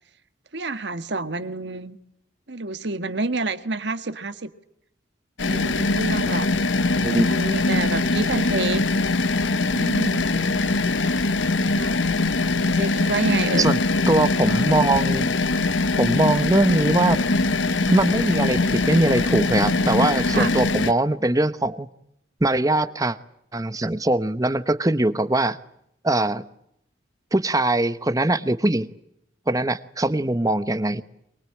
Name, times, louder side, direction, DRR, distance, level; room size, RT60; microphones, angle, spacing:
voice 1, 0.5-2.0 2.5-4.5 5.5-6.5 7.3-8.8 9.7-10.6 11.7-12.0 12.7-13.7 20.3-20.5, right 3 dB, 60° right, 11 dB, 1.5 m, -28 dB
sound 1, 5.4-20.9, left 3 dB, 75° left, 1.1 m, -22 dB
voice 2, 6.9-7.3 13.6-13.8 14.1-15.3 16.0-17.2 17.9-21.9 22.4-23.2 23.5-25.6 26.0-26.5 27.3-28.9 29.5-31.0, right 2 dB, 20° right, 13 dB, 1.0 m, -21 dB
23.5 x 22.0 x 8.8 m, 0.77 s
head